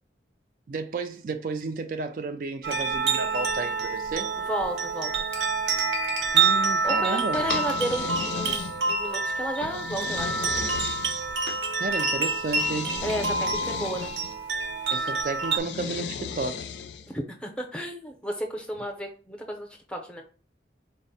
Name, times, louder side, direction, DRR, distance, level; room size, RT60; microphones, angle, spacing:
voice 1, 0.7-4.3 6.3-7.4 11.8-12.9 14.9-16.7, right 4 dB, 50° right, 0.3 m, -32 dB
sound 1, 2.6-15.6, right 4 dB, 90° right, 0.7 m, -27 dB
voice 2, 4.5-5.2 6.8-10.4 13.0-14.1 17.1-20.2, equal, 5° left, 0.6 m, -33 dB
sound 2, 7.3-9.0 9.6-11.6 12.4-14.3 15.5-17.1, left 6 dB, 80° left, 0.4 m, -35 dB
4.2 x 2.1 x 4.0 m
head